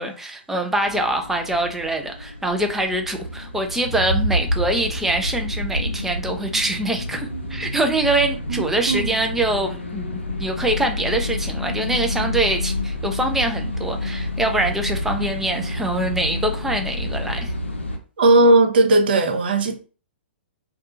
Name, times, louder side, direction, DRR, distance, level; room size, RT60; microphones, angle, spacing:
voice 1, 0.0-10.1 10.4-17.5, right 1 dB, 5° right, 0.3 m, -24 dB
sound 1, 0.8-18.0, left 1 dB, 85° left, 0.5 m, -28 dB
voice 2, 18.2-19.7, right 2 dB, 55° right, 0.5 m, -16 dB
2.6 x 2.3 x 2.5 m
figure-of-eight pair, 115°, 6 cm